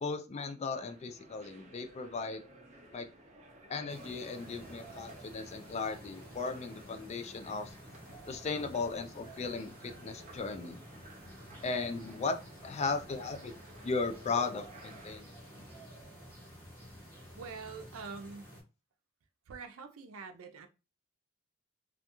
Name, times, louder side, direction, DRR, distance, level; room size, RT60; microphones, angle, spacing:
voice 1, 0.0-2.4 2.9-3.1 3.7-7.7 8.3-10.8 11.6-13.5 13.8-15.3, left 4 dB, 30° left, 0.3 m, -36 dB
sound 1, 0.6-15.2, right 1 dB, 35° right, 0.5 m, -56 dB
sound 2, 3.9-18.6, equal, 10° left, 1.0 m, -51 dB
voice 2, 17.4-18.6 19.5-20.7, right 5 dB, 85° right, 0.5 m, -45 dB
2.4 x 2.3 x 2.8 m
head